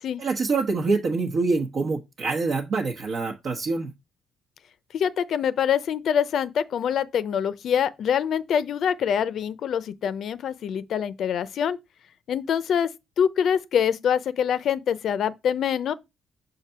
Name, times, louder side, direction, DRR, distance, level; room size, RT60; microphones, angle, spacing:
voice 1, 0.2-3.9, right 3 dB, 50° right, 1.0 m, -25 dB
voice 2, 4.9-11.8 12.3-12.9 13.2-15.9, left 8 dB, 60° left, 0.6 m, -25 dB
6.7 x 2.7 x 5.6 m
cardioid pair, 115°, 0 cm